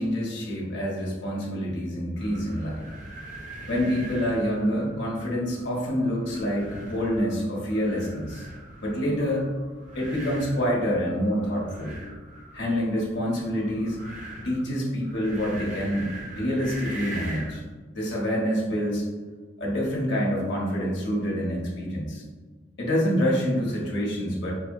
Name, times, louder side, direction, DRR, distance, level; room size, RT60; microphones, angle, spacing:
voice 1, 0.0-2.9 3.7-8.5 8.8-9.5 9.9-12.0 12.5-14.0 14.4-17.6 17.9-19.0 19.6-22.2 22.8-24.5, equal, 60° left, -4 dB, 1.1 m, -27 dB
sound 1, 2.2-17.7, right 1 dB, 40° right, 0.7 m, -42 dB
4.3 x 2.8 x 2.6 m, 1.4 s
head